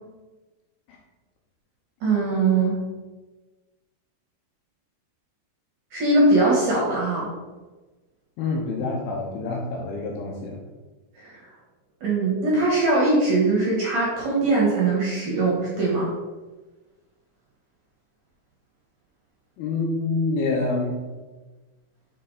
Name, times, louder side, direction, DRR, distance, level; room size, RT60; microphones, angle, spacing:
voice 1, 2.0-2.8 5.9-7.3 11.2-11.4 12.0-16.1, right 2 dB, 60° right, -5 dB, 2.2 m, -21 dB
voice 2, 8.4-10.6 19.6-21.0, left 3 dB, 85° left, 0 dB, 2.4 m, -27 dB
6.6 x 4.3 x 3.9 m, 1.2 s
omnidirectional pair, 5.0 m